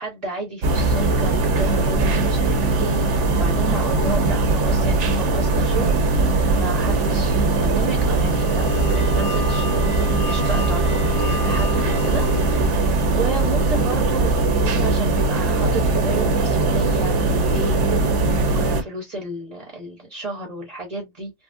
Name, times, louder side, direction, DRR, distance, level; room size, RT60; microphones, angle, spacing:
voice 1, 0.0-12.3 12.6-17.8 18.0-21.3, right 2 dB, 35° right, 0.8 m, -32 dB
sound 1, 0.6-18.8, right 3 dB, 70° right, 1.1 m, -20 dB
sound 2, 8.0-12.9, left 4 dB, 75° left, 1.7 m, -32 dB
3.5 x 2.0 x 2.5 m
omnidirectional pair, 1.3 m